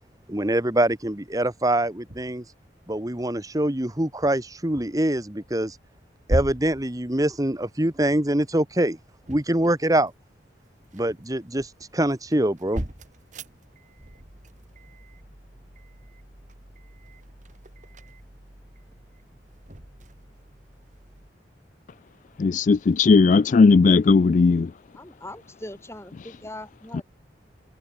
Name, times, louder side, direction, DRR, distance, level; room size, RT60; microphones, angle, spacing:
voice 1, 0.3-2.4 2.9-5.8 6.3-9.0 9.3-10.1 10.9-12.8, right 1 dB, 20° right, 1.4 m, -24 dB
sound 1, 2.1-2.5 4.2-5.1 5.5-5.8 6.3-8.2 9.0-10.4 10.7-21.3, right 1 dB, 45° right, 2.5 m, -38 dB
voice 2, 22.4-24.7 26.9-27.0, left 4 dB, 45° left, 0.3 m, -17 dB
voice 3, 24.9-27.0, left 1 dB, 15° left, 7.8 m, -40 dB
head